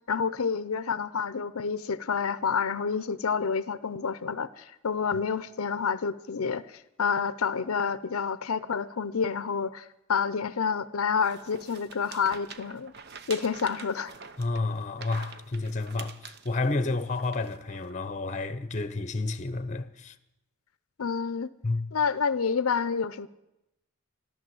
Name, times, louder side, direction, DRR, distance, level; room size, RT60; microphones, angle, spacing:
voice 1, 0.1-12.9 13.3-14.1 21.0-21.5 21.9-23.3, left 6 dB, 85° left, 0.6 m, -29 dB
sound 1, 11.2-17.9, right 6 dB, 50° right, 0.8 m, -46 dB
voice 2, 14.4-20.1 21.6-21.9, left 3 dB, 35° left, 0.8 m, -30 dB
14.0 x 12.5 x 7.7 m
head